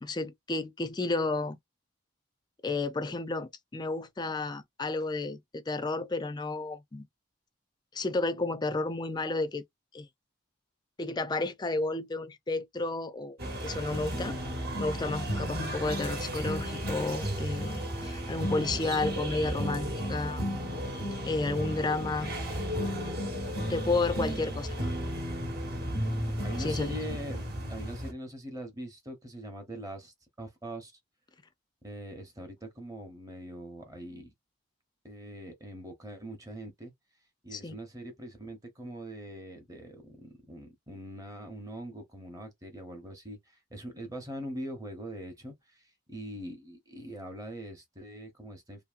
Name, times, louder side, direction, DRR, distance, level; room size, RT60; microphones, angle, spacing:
voice 1, 0.0-1.6 2.6-7.1 7.9-9.6 9.9-10.1 11.0-13.4 13.6-14.4 14.8-20.4 21.2-22.3 23.7-24.9 26.6-26.9 37.5-37.8, left 3 dB, 20° left, 0.3 m, -32 dB
sound 1, 13.4-28.1, equal, 50° right, 1.0 m, -33 dB
voice 2, 26.4-27.4 27.7-30.9 31.8-34.3 35.0-36.9 37.4-48.8, right 1 dB, 15° right, 0.8 m, -42 dB
2.7 x 2.6 x 2.4 m
head